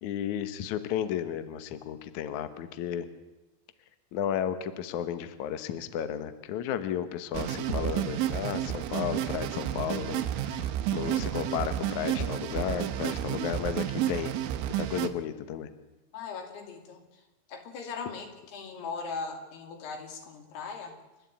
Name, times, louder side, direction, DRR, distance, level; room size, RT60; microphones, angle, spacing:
voice 1, 0.0-3.1 4.1-14.3 14.7-15.7, left 9 dB, 90° left, 11 dB, 1.6 m, -33 dB
sound 1, 7.3-15.1, right 11 dB, 85° right, 3.5 m, -31 dB
voice 2, 16.1-17.2 17.5-21.0, left 4 dB, 60° left, 5 dB, 4.3 m, -39 dB
28.5 x 12.0 x 8.6 m, 1.0 s
omnidirectional pair, 5.4 m